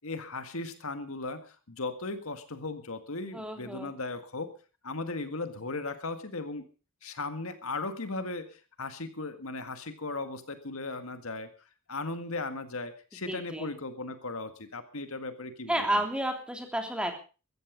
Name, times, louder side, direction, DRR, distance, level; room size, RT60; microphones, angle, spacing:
voice 1, 0.0-4.5 4.8-6.7 7.0-11.5 11.9-15.8, left 3 dB, 65° left, 9 dB, 1.8 m, -37 dB
voice 2, 3.3-3.9 13.3-13.7 15.7-17.1, right 1 dB, 5° right, 4 dB, 3.0 m, -31 dB
15.5 x 14.5 x 5.1 m, 0.35 s
head